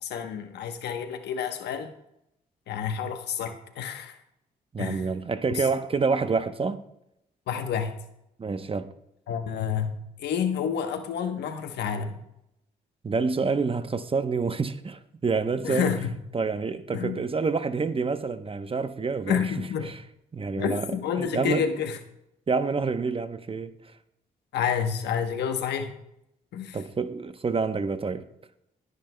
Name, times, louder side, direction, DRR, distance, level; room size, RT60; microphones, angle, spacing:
voice 1, 0.0-1.9 2.7-4.2 4.8-5.1 5.5-5.7 7.5-8.0 9.3-12.2 15.6-16.1 16.9-17.2 19.3-19.9 20.5-22.0 24.5-26.0 26.5-26.8, left 7 dB, 75° left, 1.0 m, -29 dB
voice 2, 4.7-6.8 8.4-8.9 13.0-15.9 16.3-19.4 20.3-20.9 21.2-21.7 22.5-23.7 26.7-28.3, right 4 dB, 30° right, 0.9 m, -27 dB
22.0 x 9.4 x 2.2 m
supercardioid pair, 60°, 17 cm